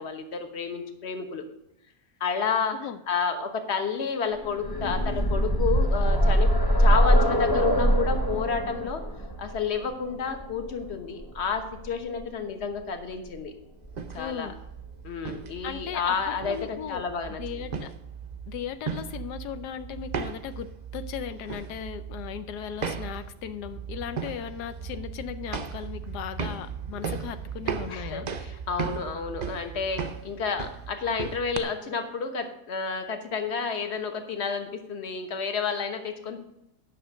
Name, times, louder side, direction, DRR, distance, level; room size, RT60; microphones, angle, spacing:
voice 1, 0.0-1.4 2.2-2.8 3.1-6.5 6.8-9.0 9.4-13.5 14.1-14.5 15.0-17.6 27.9-36.4, left 5 dB, 45° left, 6 dB, 1.4 m, -30 dB
sound 1, 4.4-12.2 13.4-13.5 13.9-14.0, equal, 20° left, 0.8 m, -23 dB
sound 2, 13.8-31.6, right 6 dB, 70° right, 0.4 m, -37 dB
voice 2, 14.2-14.5 15.6-17.0 17.4-17.9 18.5-28.3, left 9 dB, 90° left, 11 dB, 1.2 m, -37 dB
10.5 x 6.4 x 6.3 m, 0.85 s
omnidirectional pair, 1.7 m